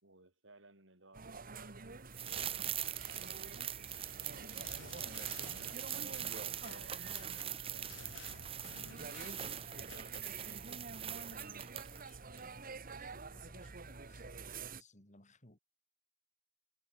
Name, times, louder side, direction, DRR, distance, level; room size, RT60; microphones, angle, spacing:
voice 1, 0.0-8.1, right 2 dB, 75° right, 6.5 m, -63 dB
sound 1, 1.1-14.8, right 4 dB, 50° right, 1.7 m, -49 dB
sound 2, 2.1-12.1 12.4-12.5, right 10 dB, 30° right, 0.6 m, -42 dB
sound 3, 4.7-7.5 7.9-10.3, left 6 dB, 75° left, 0.9 m, -54 dB
voice 2, 10.1-10.5 11.0-15.6, left 2 dB, 40° left, 6.2 m, -64 dB
head